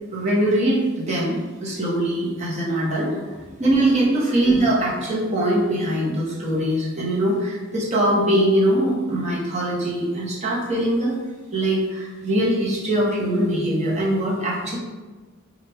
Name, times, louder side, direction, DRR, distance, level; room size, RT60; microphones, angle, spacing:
voice 1, 0.1-11.2 11.5-14.8, right 1 dB, 35° right, -5 dB, 1.0 m, -22 dB
4.2 x 2.4 x 3.3 m, 1.3 s
head